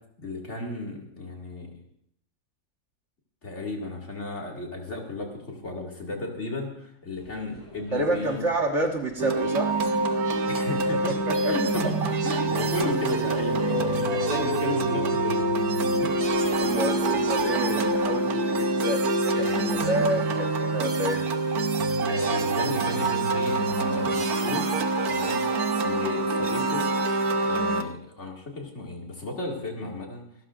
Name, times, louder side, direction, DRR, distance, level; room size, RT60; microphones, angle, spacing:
voice 1, 0.2-1.7 3.4-8.5 10.5-11.1 11.4-15.5 18.5-18.6 19.3-20.0 22.1-24.8 25.1-26.9 27.3-30.2, left 2 dB, 50° left, 0 dB, 2.6 m, -34 dB
sound 1, 7.2-18.1, right 1 dB, 15° left, 4.2 m, -50 dB
voice 2, 7.9-9.7 11.0-11.7 16.0-16.1 16.6-21.3, right 1 dB, 55° right, 2 dB, 1.9 m, -29 dB
sound 2, 9.2-27.8, right 3 dB, 90° right, 1.5 m, -26 dB
sound 3, 13.4-20.7, left 4 dB, 85° left, 3.7 m, -31 dB
26.0 x 12.5 x 2.5 m, 0.69 s
omnidirectional pair, 1.5 m